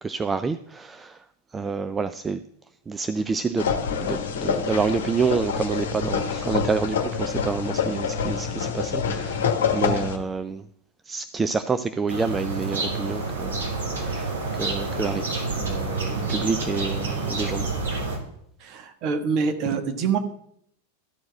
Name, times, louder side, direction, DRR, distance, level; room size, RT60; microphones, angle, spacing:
voice 1, 0.0-1.2 1.5-2.4 2.9-3.7 4.0-9.5 9.7-10.6 11.1-13.6 14.0-15.3 15.6-17.7, right 4 dB, 15° right, 11 dB, 0.4 m, -28 dB
sound 1, 3.6-10.2, left 6 dB, 60° left, 1.2 m, -26 dB
sound 2, 12.1-18.2, right 3 dB, 65° right, 2.2 m, -28 dB
voice 2, 18.6-20.2, right 5 dB, 40° right, 6 dB, 1.3 m, -25 dB
13.0 x 4.6 x 7.6 m, 0.72 s
figure-of-eight pair, 90°, 0 cm